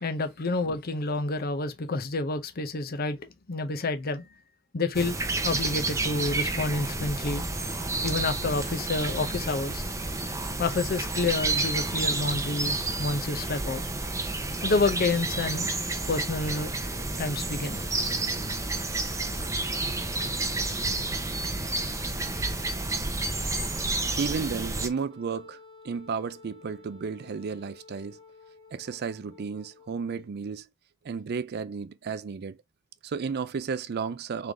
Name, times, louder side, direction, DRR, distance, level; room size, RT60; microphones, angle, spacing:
voice 1, 0.0-4.3 4.7-5.2 5.4-7.4 8.0-9.8 10.6-13.8 14.6-15.7 16.1-16.7 17.2-17.8, left 3 dB, 45° left, 0.7 m, -29 dB
sound 1, 4.9-24.9, right 2 dB, 15° right, 0.7 m, -30 dB
voice 2, 24.2-25.6 25.8-28.2 28.7-30.7 31.0-32.6 33.0-34.5, right 5 dB, 50° right, 0.4 m, -33 dB
Wind instrument woodwind instrument, 25.1-30.2, left 4 dB, 20° left, 1.4 m, -52 dB
3.8 x 3.3 x 3.4 m
head